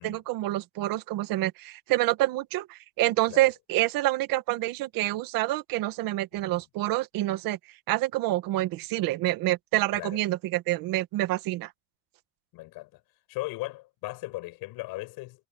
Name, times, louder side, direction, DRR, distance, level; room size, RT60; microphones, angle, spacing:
voice 1, 0.0-7.6 7.9-11.7, right 16 dB, 55° right, 1.8 m, -27 dB
voice 2, 12.5-13.0 13.3-15.5, left 20 dB, 60° left, 7.3 m, -38 dB
cardioid pair, 155°, 40 cm